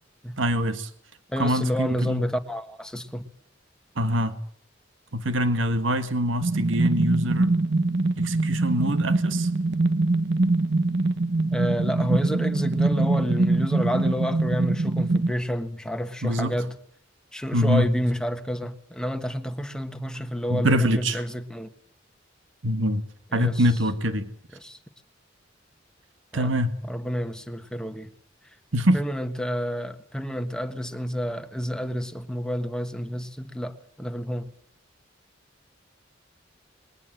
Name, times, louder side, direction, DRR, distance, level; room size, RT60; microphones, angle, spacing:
voice 1, 0.4-0.9 1.4-2.3 4.0-4.4 5.1-7.6 8.2-9.5 16.2-16.5 17.5-17.9 20.5-21.2 22.6-23.1 23.3-24.3 26.3-26.8 28.7-29.0, equal, 85° right, 1.8 m, -24 dB
voice 2, 1.3-3.3 11.5-16.7 17.3-21.7 23.3-23.6 24.6-24.8 26.3-26.5 26.9-28.1 28.9-34.4, equal, 5° left, 1.4 m, -29 dB
sound 1, 6.4-15.3, right 2 dB, 65° right, 1.1 m, -23 dB
21.5 x 17.5 x 7.8 m
head